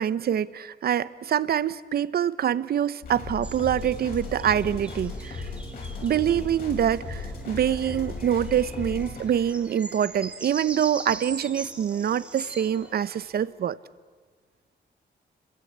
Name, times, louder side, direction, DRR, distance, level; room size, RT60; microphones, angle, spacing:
voice 1, 0.0-5.4 6.0-13.8, right 9 dB, 60° right, 16 dB, 0.8 m, -25 dB
sound 1, 3.0-9.2, left 3 dB, 55° left, 7.7 m, -36 dB
sound 2, 3.4-6.6 7.4-13.3, right 2 dB, 5° right, 3.4 m, -42 dB
sound 3, 5.7-13.5, left 2 dB, 85° left, 6.1 m, -52 dB
30.0 x 22.5 x 8.6 m, 1.4 s
wide cardioid pair, 165°, 18 cm